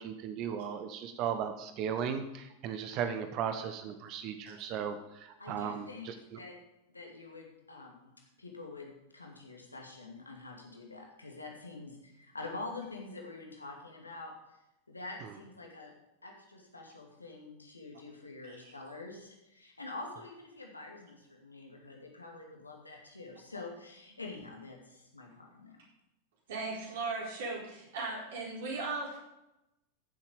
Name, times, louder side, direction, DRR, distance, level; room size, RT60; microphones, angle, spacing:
voice 1, 0.0-6.4 15.2-15.3, right 8 dB, 40° right, 9 dB, 1.1 m, -36 dB
voice 2, 5.4-6.5 6.9-14.3 14.9-15.9 16.2-25.8, left 3 dB, 80° left, 1 dB, 2.5 m, -46 dB
voice 3, 26.5-29.2, right 3 dB, 60° right, -3 dB, 4.3 m, -37 dB
15.0 x 7.5 x 5.3 m, 0.91 s
figure-of-eight pair, 90°, 0 cm